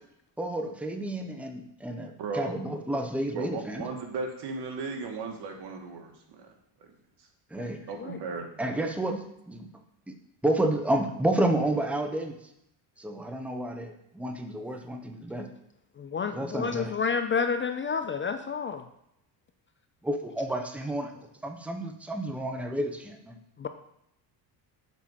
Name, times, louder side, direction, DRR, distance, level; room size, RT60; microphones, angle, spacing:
voice 1, 0.4-3.9 7.5-7.8 8.6-9.7 10.1-10.2 10.4-12.4 13.0-15.5 16.3-16.9 20.0-21.1 21.4-23.4, right 1 dB, 5° right, 4 dB, 1.1 m, -30 dB
voice 2, 2.2-2.6 3.3-6.1 6.4-6.5 7.9-8.5, right 3 dB, 60° right, 3 dB, 2.1 m, -35 dB
voice 3, 16.0-18.8 23.6-23.7, left 5 dB, 25° left, 8 dB, 0.5 m, -30 dB
7.4 x 5.5 x 7.4 m, 0.78 s
cardioid pair, 110°, 46 cm